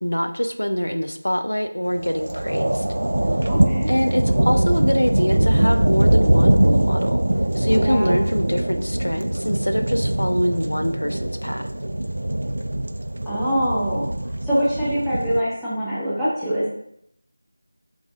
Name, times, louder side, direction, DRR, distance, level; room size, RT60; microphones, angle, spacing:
voice 1, 0.0-2.8 3.9-7.2 7.5-11.6, equal, 75° left, 7 dB, 0.4 m, -24 dB
sound 1, 1.9-15.4, right 1 dB, 60° right, 0.3 m, -22 dB
voice 2, 3.5-3.9 7.8-8.2 13.3-14.1 14.4-16.7, equal, ahead, -15 dB, 0.6 m, -24 dB
4.7 x 2.6 x 3.5 m, 0.72 s
figure-of-eight pair, 170°, 0 cm